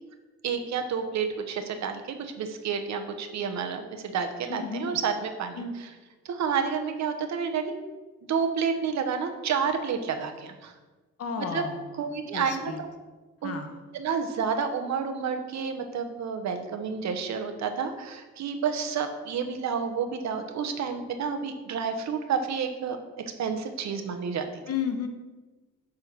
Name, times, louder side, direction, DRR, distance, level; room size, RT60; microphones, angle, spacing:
voice 1, 0.4-5.9 6.2-7.6 8.3-10.7 11.5-11.6 12.0-12.9 13.4-13.6 13.9-23.0 23.4-24.6, right 6 dB, 65° right, 7 dB, 1.0 m, -30 dB
voice 2, 4.5-5.0 5.6-5.7 11.2-11.8 12.3-12.8 13.4-13.8 24.7-25.1, left 6 dB, 55° left, 6 dB, 1.0 m, -32 dB
7.4 x 3.7 x 6.0 m, 1.2 s
cardioid pair, 90°, 30 cm